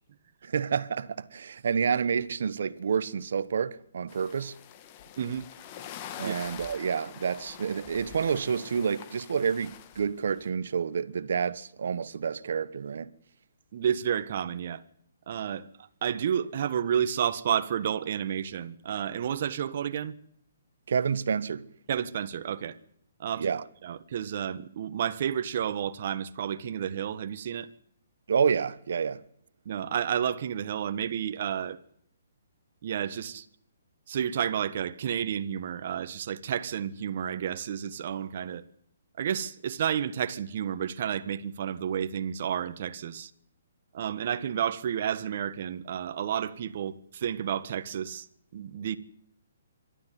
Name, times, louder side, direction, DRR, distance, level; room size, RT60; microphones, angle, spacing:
voice 1, 0.4-4.5 6.2-13.1 20.9-21.6 23.4-23.6 28.3-29.2, right 6 dB, 70° right, 1.3 m, -29 dB
sound 1, 4.1-10.5, left 10 dB, 30° left, 1.9 m, -45 dB
voice 2, 5.2-5.5 6.2-6.3 13.7-14.8 15.3-15.7 16.0-20.1 21.9-22.8 23.2-23.5 23.8-27.7 29.6-31.8 32.8-33.4 34.1-38.6 39.2-43.3 43.9-48.3 48.5-49.0, right 9 dB, 50° right, 1.5 m, -31 dB
25.5 x 13.0 x 9.5 m
hypercardioid pair, 150°, 0 cm